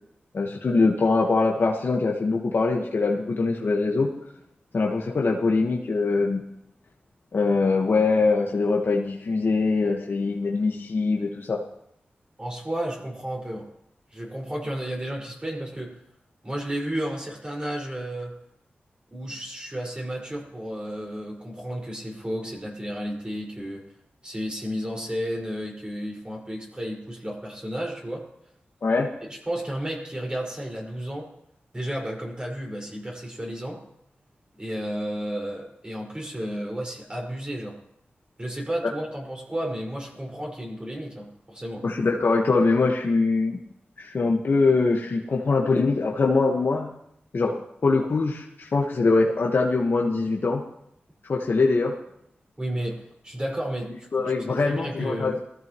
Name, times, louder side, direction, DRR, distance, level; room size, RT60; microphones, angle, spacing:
voice 1, 0.3-4.1 4.7-6.4 7.3-11.6 28.8-29.1 41.8-43.6 44.0-46.9 47.3-50.6 51.3-51.9 54.1-55.4, left 3 dB, 65° left, -2 dB, 1.5 m, -23 dB
voice 2, 12.4-13.7 14.1-16.0 16.4-18.3 19.1-23.8 24.2-28.3 29.2-31.3 31.7-33.8 34.6-37.8 38.4-41.9 52.6-55.4, equal, 25° right, -2 dB, 5.2 m, -32 dB
20.0 x 14.0 x 3.1 m, 0.76 s
cardioid pair, 60°, 4 cm